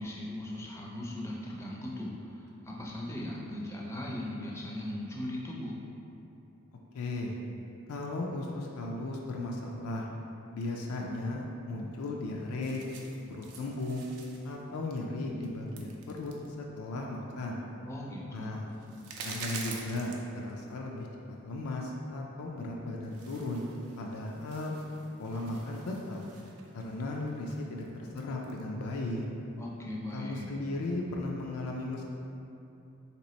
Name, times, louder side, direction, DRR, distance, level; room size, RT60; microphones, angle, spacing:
voice 1, 0.0-5.8 17.9-18.8 29.6-30.6, left 1 dB, 10° left, -3 dB, 0.4 m, -38 dB
voice 2, 6.9-7.4 7.9-10.1 10.5-12.8 13.3-14.0 14.4-17.6 18.3-18.7 19.2-21.1 21.4-23.6 24.0-24.8 25.2-26.2 26.7-29.2 30.1-32.0, left 2 dB, 80° left, -1 dB, 0.4 m, -36 dB
sound 1, 12.6-20.8 21.1-21.2 22.6-22.7 23.0-28.6, right 4 dB, 85° right, 0.5 m, -48 dB
3.3 x 2.9 x 4.0 m, 2.9 s
head